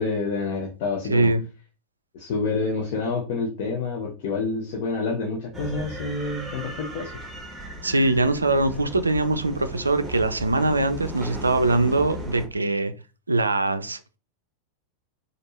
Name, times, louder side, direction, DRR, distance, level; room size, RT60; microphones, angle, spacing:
voice 1, 0.0-1.3 2.1-7.1, left 3 dB, 50° left, 0.9 m, -28 dB
voice 2, 1.1-1.4 7.8-12.9 13.3-14.2, right 2 dB, 80° right, 0.4 m, -22 dB
sound 1, 5.5-12.5, right 1 dB, 10° right, 1.3 m, -37 dB
4.3 x 2.6 x 3.0 m
figure-of-eight pair, 90°, 0 cm